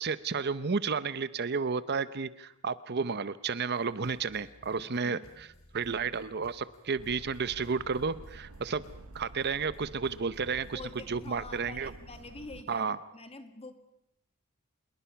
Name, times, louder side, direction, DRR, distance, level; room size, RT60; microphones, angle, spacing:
voice 1, 0.0-5.5 5.7-8.8 9.1-10.8 11.1-11.9 12.7-13.0, right 5 dB, 50° right, 15 dB, 0.7 m, -32 dB
sound 1, 3.7-12.4, equal, 70° left, 5.1 m, -58 dB
voice 2, 4.8-5.3 10.7-12.9 13.1-13.7, left 3 dB, 30° left, 8 dB, 2.0 m, -46 dB
sound 2, 7.0-12.6, right 2 dB, 80° right, 0.9 m, -50 dB
27.0 x 22.0 x 5.8 m, 0.80 s
head